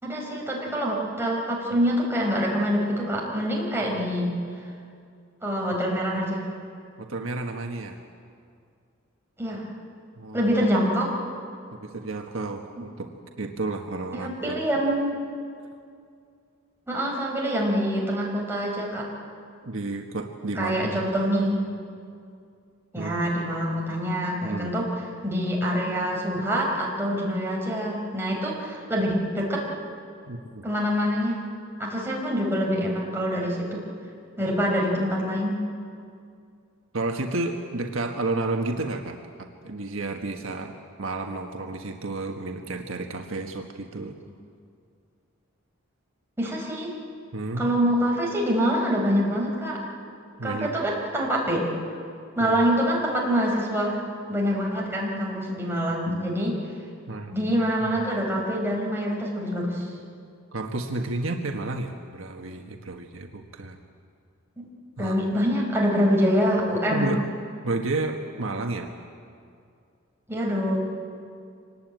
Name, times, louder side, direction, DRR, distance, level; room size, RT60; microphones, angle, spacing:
voice 1, 0.0-4.4 5.4-6.5 9.4-9.7 10.3-11.1 14.1-15.2 16.9-19.0 20.5-21.6 22.9-24.9 25.2-29.6 30.6-31.3 31.8-33.8 34.4-35.6 46.4-46.9 47.6-49.8 50.4-51.6 52.4-54.0 54.3-56.5 57.3-59.9 64.6-64.7 65.0-67.1 70.3-70.8, equal, 10° right, -2 dB, 4.9 m, -25 dB
voice 2, 7.0-8.0 10.2-10.5 11.7-13.1 13.4-14.6 19.6-21.1 22.9-23.2 24.4-24.7 30.3-30.6 36.9-40.7 41.0-44.1 47.3-47.6 50.4-50.7 52.4-52.6 57.1-57.5 57.8-58.0 60.5-63.8 65.0-65.3 66.9-67.2 67.6-68.9, right 2 dB, 70° right, 3 dB, 1.5 m, -31 dB
25.0 x 19.5 x 9.2 m, 2.4 s
head